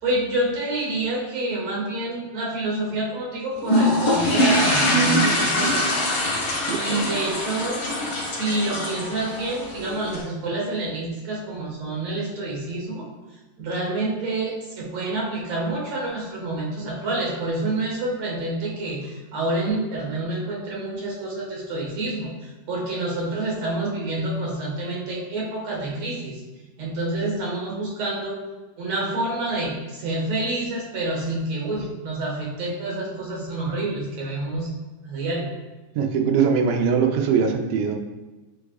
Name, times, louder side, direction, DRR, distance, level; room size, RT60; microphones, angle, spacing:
voice 1, 0.0-6.0 6.7-7.8 8.3-13.1 13.6-26.4 26.8-28.4 28.8-34.7 35.0-35.5, right 2 dB, 60° right, -4 dB, 2.6 m, -28 dB
sound 1, 3.6-10.2, left 1 dB, 45° left, 2.8 m, -23 dB
voice 2, 36.0-38.0, right 6 dB, 85° right, 3 dB, 2.4 m, -21 dB
9.5 x 4.8 x 2.4 m, 1.2 s
omnidirectional pair, 3.8 m